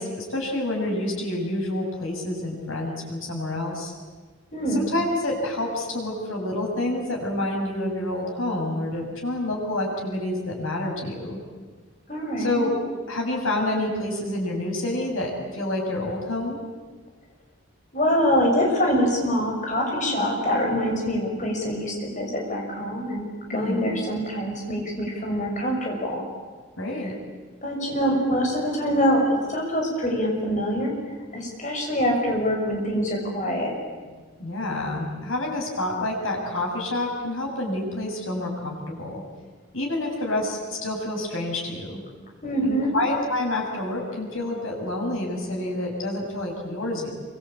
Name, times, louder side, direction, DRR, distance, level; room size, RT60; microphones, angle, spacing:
voice 1, 0.0-3.9 4.7-11.4 12.4-12.7 13.1-16.6 23.5-23.9 26.8-27.2 34.4-39.2 39.7-42.0 42.6-47.1, left 1 dB, 90° left, 0 dB, 7.7 m, -28 dB
voice 2, 4.5-4.9 12.1-12.7 17.9-26.3 27.6-31.0 31.3-33.8 34.0-34.1 42.4-43.0, equal, 35° left, 1 dB, 6.4 m, -25 dB
26.5 x 24.5 x 8.7 m, 1.4 s
head